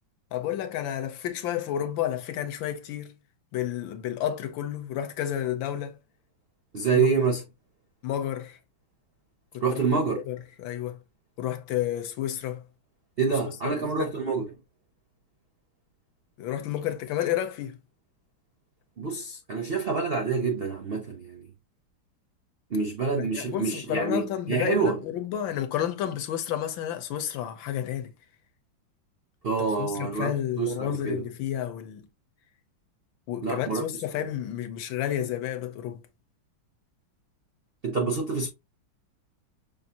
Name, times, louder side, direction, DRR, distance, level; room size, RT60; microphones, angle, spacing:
voice 1, 0.3-3.1 3.5-6.0 6.9-7.2 8.0-8.6 9.5-11.0 11.4-12.6 13.6-14.1 16.4-17.8 23.2-28.1 29.6-32.1 33.3-36.0, left 11 dB, 80° left, 1.4 m, -31 dB
voice 2, 6.7-7.4 9.6-10.2 13.2-14.5 19.0-21.5 22.7-25.0 29.4-31.2 33.4-33.8 37.8-38.5, right 4 dB, 75° right, 0.5 m, -27 dB
5.8 x 2.5 x 2.8 m
omnidirectional pair, 2.2 m